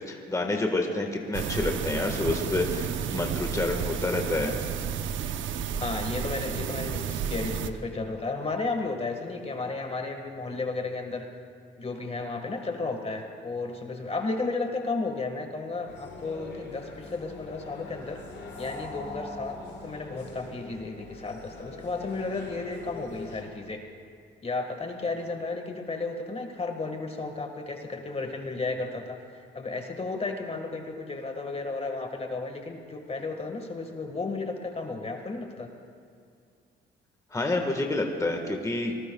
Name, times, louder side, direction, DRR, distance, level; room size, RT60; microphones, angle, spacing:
voice 1, 0.1-4.6 37.3-39.0, left 2 dB, 15° left, 2 dB, 1.5 m, -28 dB
sound 1, 1.3-7.7, right 8 dB, 75° right, 0.8 m, -32 dB
voice 2, 5.8-11.2 11.8-18.2 18.6-23.8 24.4-35.7, left 3 dB, 30° left, 4 dB, 1.6 m, -33 dB
sound 2, 15.9-23.4, left 2 dB, 60° left, 5.3 m, -43 dB
27.5 x 19.5 x 2.3 m, 2.3 s
cardioid pair, 90°, 20 cm